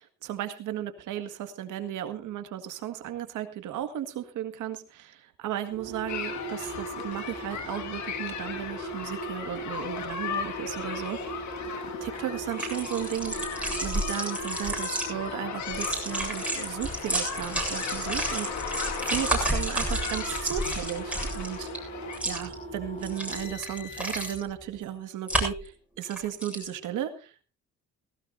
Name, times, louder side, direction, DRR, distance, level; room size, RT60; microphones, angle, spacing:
voice 1, 0.0-11.4 12.0-13.5 13.8-21.7 22.3-27.4, right 11 dB, 85° right, 8 dB, 1.9 m, -35 dB
sound 1, 5.7-24.7, right 1 dB, 25° left, 6.9 m, -40 dB
sound 2, 6.1-22.2, left 7 dB, 70° left, 2.0 m, -37 dB
sound 3, 12.5-15.0 15.6-21.8 22.1-22.5 23.0-24.4 25.3-25.7 26.0-26.7, right 1 dB, 5° right, 7.7 m, -31 dB
18.0 x 16.5 x 2.7 m, 0.34 s
cardioid pair, 90°, 30 cm